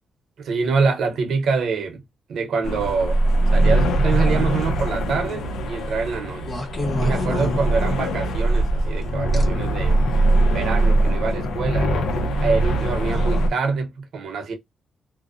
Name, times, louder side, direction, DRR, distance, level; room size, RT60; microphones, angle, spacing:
voice 1, 0.4-2.0 2.3-3.2 3.5-6.5 7.0-10.0 10.5-11.9 12.4-14.5, right 4 dB, 70° right, 0.7 m, -25 dB
sound 1, 2.6-13.5, right 1 dB, 85° left, 0.5 m, -21 dB
sound 2, 6.4-8.2 9.3-9.4 10.3-10.5, left 1 dB, 35° left, 0.9 m, -30 dB
2.6 x 2.0 x 2.4 m
cardioid pair, 100°, 0 cm